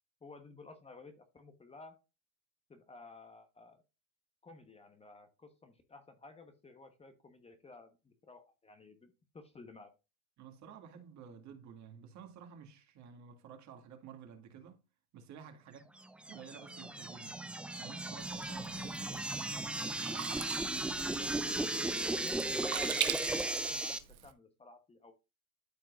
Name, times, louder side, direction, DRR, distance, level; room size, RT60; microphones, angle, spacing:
voice 1, 0.2-2.0 2.7-3.8 4.4-9.9 21.1-25.1, left 3 dB, 15° left, 1.1 m, -54 dB
voice 2, 10.4-14.8 15.1-15.9 16.3-17.5 17.8-19.4, right 7 dB, 45° right, 2.1 m, -52 dB
sound 1, 16.0-24.0, right 2 dB, 5° right, 0.3 m, -36 dB
Sink (filling or washing), 18.2-24.3, right 12 dB, 90° right, 1.0 m, -42 dB
13.0 x 4.5 x 2.5 m
hypercardioid pair, 105°, 41 cm